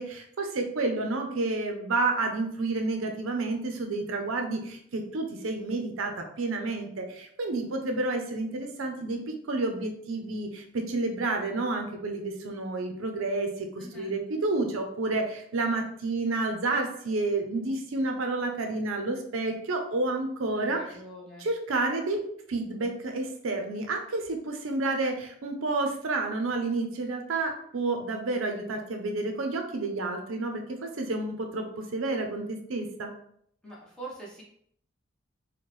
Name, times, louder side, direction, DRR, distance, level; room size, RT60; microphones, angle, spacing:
voice 1, 0.0-21.0 21.4-22.2 22.5-33.1, right 2 dB, 90° right, 4 dB, 0.6 m, -30 dB
voice 2, 13.8-14.1 20.6-21.4 33.6-34.4, right 2 dB, 5° left, -6 dB, 0.9 m, -43 dB
4.4 x 2.2 x 3.1 m, 0.66 s
head